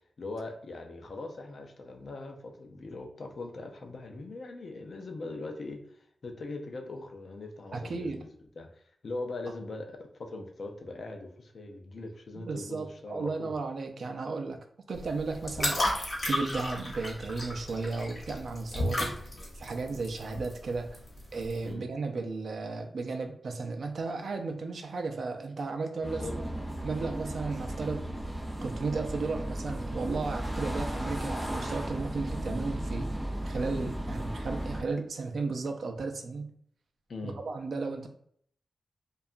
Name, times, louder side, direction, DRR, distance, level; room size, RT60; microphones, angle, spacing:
voice 1, 0.2-8.3 8.6-13.5 21.6-21.9 26.1-26.3 37.1-37.4, left 2 dB, 50° left, 3 dB, 0.4 m, -41 dB
voice 2, 7.7-8.2 12.4-14.6 14.9-19.2 19.5-21.0 21.3-26.3 26.8-28.1 28.6-33.1 33.4-36.5 37.2-38.1, right 3 dB, 60° right, 5 dB, 0.3 m, -34 dB
sound 1, 14.9-21.7, left 1 dB, 35° left, 0.8 m, -34 dB
sound 2, 26.0-34.8, right 1 dB, 5° right, 0.5 m, -35 dB
2.8 x 2.3 x 2.4 m, 0.65 s
wide cardioid pair, 180°, 0 cm